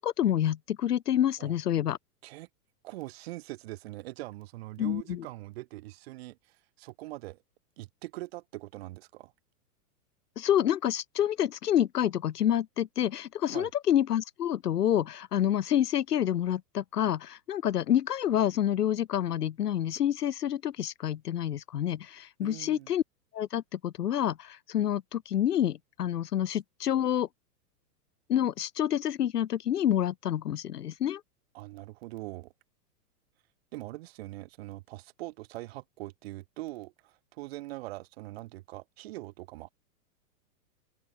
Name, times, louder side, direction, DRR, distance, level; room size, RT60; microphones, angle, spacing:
voice 1, 0.0-2.0 4.8-5.2 10.4-23.0 23.3-27.3 28.3-31.2, left 10 dB, 75° left, 6.4 m, -28 dB
voice 2, 2.8-7.4 7.8-9.3 13.5-13.7 22.4-22.9 31.5-32.5 33.7-39.7, right 18 dB, 40° right, 8.0 m, -42 dB
open air
supercardioid pair, 175°, 47 cm